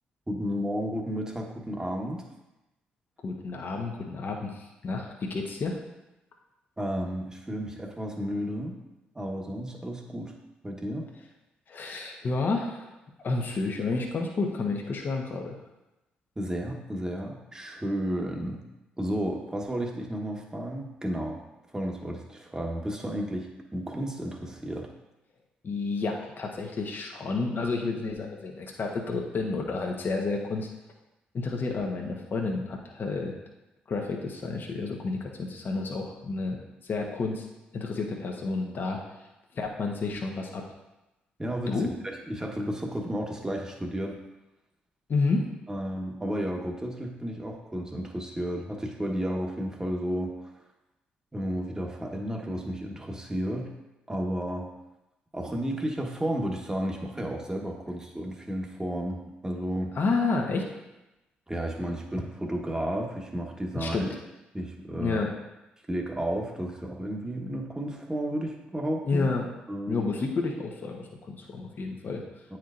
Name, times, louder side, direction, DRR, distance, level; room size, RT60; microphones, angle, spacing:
voice 1, 0.3-2.2 6.8-8.8 9.1-10.3 10.6-11.1 16.4-18.6 19.0-21.4 21.7-24.9 41.4-44.2 45.7-50.3 51.3-53.7 54.1-54.7 55.3-59.9 61.5-64.1 64.5-65.2 65.9-69.3 69.7-70.1, equal, 15° right, 1 dB, 1.3 m, -32 dB
voice 2, 3.2-5.8 11.7-12.9 13.2-15.6 25.6-30.7 31.3-33.3 33.9-36.6 36.8-37.4 37.7-39.0 39.5-40.6 41.7-41.9 45.1-45.5 59.9-60.7 63.7-64.1 65.0-65.3 69.1-69.4 69.9-72.2, left 3 dB, 50° left, 1 dB, 1.0 m, -30 dB
9.1 x 4.5 x 2.6 m, 0.97 s
hypercardioid pair, 45°, 4 cm